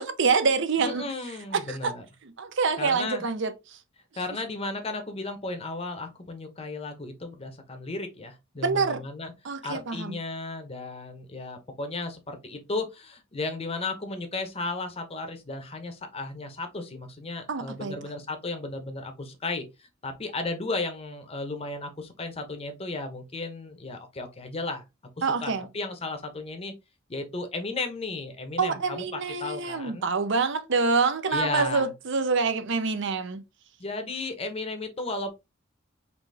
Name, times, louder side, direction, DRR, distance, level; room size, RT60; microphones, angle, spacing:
voice 1, 0.0-1.1 1.5-1.9 2.4-3.5 8.6-9.0 9.4-10.2 17.5-17.9 25.2-25.7 28.6-33.4, right 4 dB, 65° right, 0.6 m, -26 dB
voice 2, 0.8-2.0 2.8-3.2 4.1-9.3 9.6-24.8 25.2-26.7 27.1-30.1 31.3-31.9 33.8-35.4, left 3 dB, 30° left, 0.8 m, -34 dB
4.1 x 2.8 x 3.3 m
head